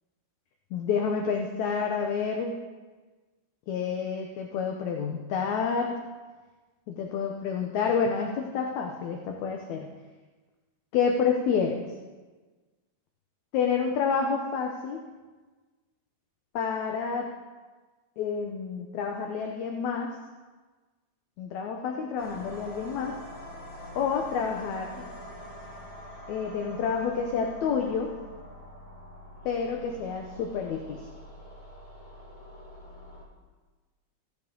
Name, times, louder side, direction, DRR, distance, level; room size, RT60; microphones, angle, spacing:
voice 1, 0.7-2.6 3.7-6.0 6.9-9.9 10.9-11.8 13.5-15.0 16.5-17.3 18.2-20.1 21.4-23.2 24.0-25.1 26.3-28.1 29.5-31.1, left 6 dB, 70° left, 2 dB, 1.9 m, -29 dB
sound 1, 22.2-33.2, left 1 dB, 40° left, 2.9 m, -45 dB
15.5 x 7.7 x 3.8 m, 1.3 s
omnidirectional pair, 3.9 m